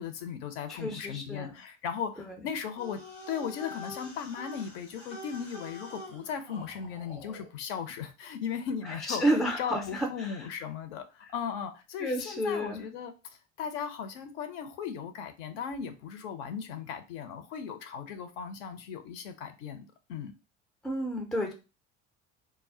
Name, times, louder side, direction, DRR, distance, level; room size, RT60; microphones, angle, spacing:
voice 1, 0.0-3.0 3.3-9.2 9.6-13.1 13.6-20.3, left 7 dB, 55° left, 8 dB, 0.5 m, -37 dB
voice 2, 0.7-1.5 2.2-2.4 9.1-10.4 12.0-12.8 20.8-21.5, equal, ahead, 3 dB, 0.3 m, -30 dB
sound 1, 2.8-7.5, left 1 dB, 85° left, 0.9 m, -46 dB
2.1 x 2.1 x 3.6 m, 0.30 s
figure-of-eight pair, 60°, 37 cm